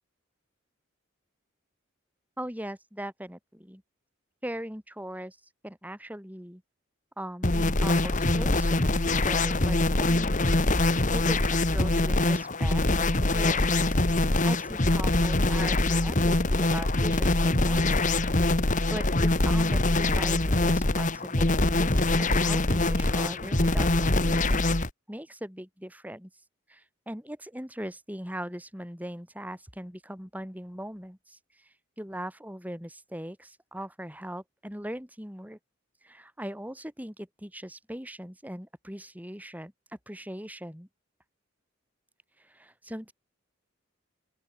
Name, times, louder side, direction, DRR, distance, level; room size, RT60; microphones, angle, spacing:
voice 1, 2.4-3.8 4.4-5.4 5.6-6.6 7.2-10.5 11.1-14.0 14.4-18.1 18.9-24.6 25.1-26.3 26.7-35.6 36.0-39.7 40.1-40.9 42.4-43.1, right 1 dB, 10° right, 6.4 m, -40 dB
sound 1, 7.4-24.9, left 2 dB, 40° left, 1.7 m, -24 dB
open air
head